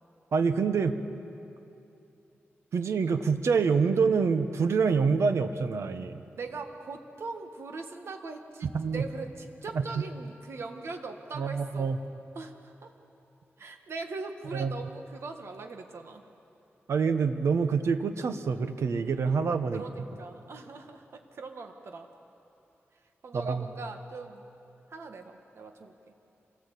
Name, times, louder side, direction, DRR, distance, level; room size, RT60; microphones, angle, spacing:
voice 1, 0.3-1.0 2.7-6.2 8.6-9.0 11.3-12.0 14.5-14.7 16.9-19.8 23.3-23.7, right 5 dB, 90° right, 8 dB, 1.2 m, -26 dB
voice 2, 6.3-11.9 12.4-12.9 13.6-16.2 19.7-22.1 23.2-24.5 24.9-26.1, right 3 dB, 70° right, 4 dB, 1.9 m, -41 dB
27.0 x 19.0 x 8.5 m, 2.8 s
wide cardioid pair, 130°, 5 cm